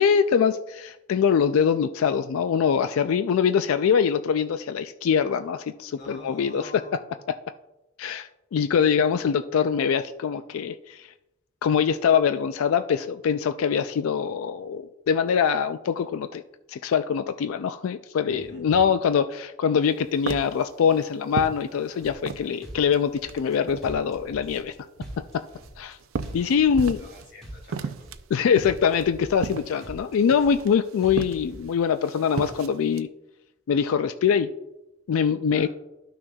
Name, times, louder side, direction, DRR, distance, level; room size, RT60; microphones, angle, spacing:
voice 1, 0.0-7.0 8.0-11.1 11.6-16.4 16.7-24.8 25.3-25.4 25.8-26.0 26.3-27.1 28.3-33.1 33.7-34.5 35.1-35.7, left 7 dB, 75° left, 10 dB, 0.3 m, -23 dB
voice 2, 5.9-7.2 18.2-18.8 27.0-28.1 35.5-35.7, equal, 45° left, -3 dB, 3.0 m, -46 dB
sound 1, 19.8-22.6 22.9-24.1 24.5-27.3 27.6-33.0, right 5 dB, 75° right, 0.5 m, -35 dB
sound 2, 22.0-22.3 22.6-23.5 23.8-24.7 25.0-25.9 26.2-27.1 27.4-28.3 28.6-29.5 29.8-30.7 31.0-31.6, right 1 dB, ahead, 2.7 m, -43 dB
13.0 x 6.1 x 2.3 m, 0.96 s
head